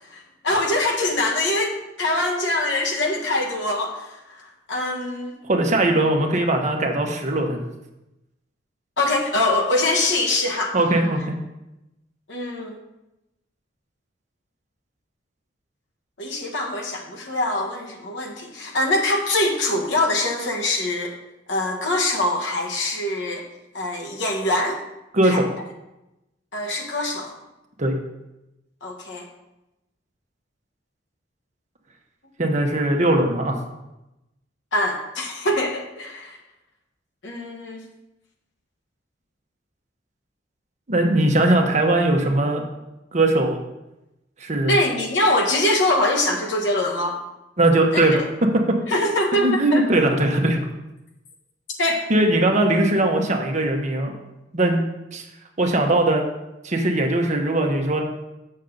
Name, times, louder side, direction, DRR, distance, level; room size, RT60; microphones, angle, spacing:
voice 1, 0.1-5.3 9.0-10.7 12.3-12.8 16.2-21.1 21.5-23.4 23.7-24.8 25.2-25.4 26.5-27.3 28.8-29.3 34.7-36.4 37.2-37.8 44.7-47.2 47.9-48.3 48.9-49.8 51.8-52.0, left 1 dB, 70° left, 0 dB, 1.3 m, -23 dB
voice 2, 5.4-7.6 10.7-11.4 25.1-25.5 27.8-28.0 32.4-33.6 40.9-42.6 43.1-43.6 44.4-44.8 47.6-48.2 48.7-48.8 49.4-50.6 52.1-54.1 54.5-54.8 55.1-55.2 55.6-56.2 56.6-58.0, right 1 dB, 40° right, 2 dB, 1.0 m, -20 dB
7.3 x 6.6 x 3.9 m, 0.94 s
head